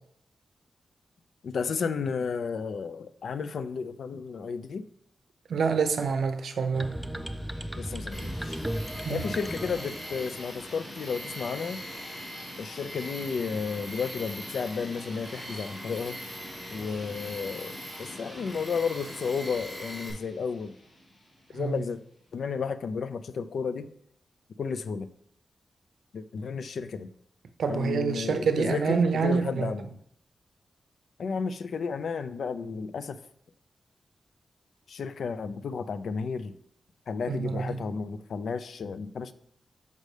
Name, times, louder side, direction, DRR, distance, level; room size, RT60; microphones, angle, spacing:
voice 1, 1.4-4.9 7.8-8.6 9.1-11.8 12.6-16.2 16.7-20.8 21.5-22.0 22.3-23.9 24.6-25.1 26.1-27.1 27.7-29.9 31.2-33.2 34.9-36.5 37.1-39.3, left 5 dB, 75° left, 0.3 m, -32 dB
voice 2, 5.5-7.0 9.0-9.2 21.5-21.8 27.6-29.7 37.3-37.8, right 5 dB, 80° right, 0.5 m, -27 dB
sound 1, 6.7-10.7, equal, 5° right, 0.4 m, -36 dB
sound 2, 7.0-22.4, left 1 dB, 55° left, 2.3 m, -47 dB
Tools, 8.1-20.1, equal, 20° left, 2.0 m, -42 dB
6.4 x 5.2 x 3.2 m
wide cardioid pair, 115°, 0 cm